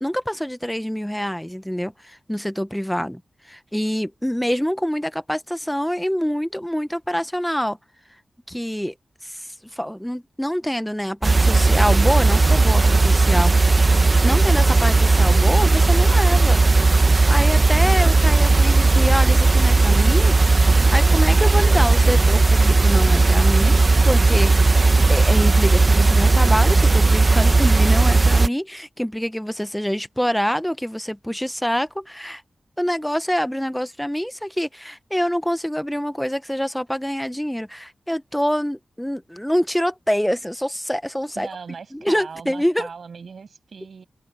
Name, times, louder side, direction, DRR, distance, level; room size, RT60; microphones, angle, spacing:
voice 1, 0.0-7.8 8.5-8.9 9.2-13.8 14.2-16.6 17.0-20.4 20.7-24.8 25.1-32.4 32.8-41.5 41.9-42.9, equal, 5° left, 0.9 m, -25 dB
sound 1, 11.2-28.5, right 3 dB, 35° right, 0.9 m, -16 dB
voice 2, 41.4-44.0, right 5 dB, 70° right, 6.9 m, -38 dB
wide cardioid pair, 130°, 0 cm